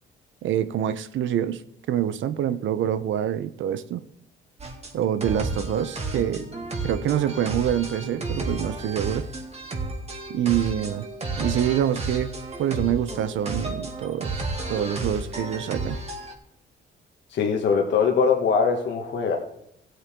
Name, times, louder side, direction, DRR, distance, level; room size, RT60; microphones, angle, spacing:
voice 1, 0.4-1.6 1.9-4.0 4.9-6.5 6.8-9.3 10.3-11.1 11.4-12.3 12.6-14.4 14.7-16.0, right 10 dB, 75° right, 0.8 m, -26 dB
sound 1, 4.6-16.3, right 2 dB, 30° right, 2.2 m, -32 dB
voice 2, 17.3-19.4, left 6 dB, 65° left, 1.7 m, -22 dB
16.5 x 8.2 x 3.8 m
cardioid pair, 90°, 20 cm